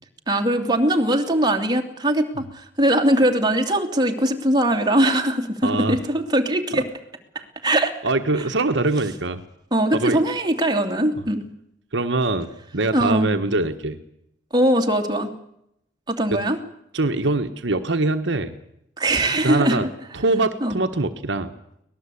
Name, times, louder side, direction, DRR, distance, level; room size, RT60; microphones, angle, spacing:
voice 1, 0.3-6.8 7.6-7.9 9.7-11.4 12.9-13.3 14.5-15.3 16.1-16.6 19.0-19.8 20.6-20.8, right 1 dB, 25° right, 4 dB, 2.7 m, -21 dB
voice 2, 5.6-6.0 6.7-6.8 8.0-9.4 9.9-10.2 11.9-14.0 16.3-16.4 16.9-18.5 19.4-19.8 20.1-21.5, right 2 dB, 70° right, 8 dB, 1.4 m, -23 dB
24.5 x 19.0 x 8.5 m, 0.78 s
head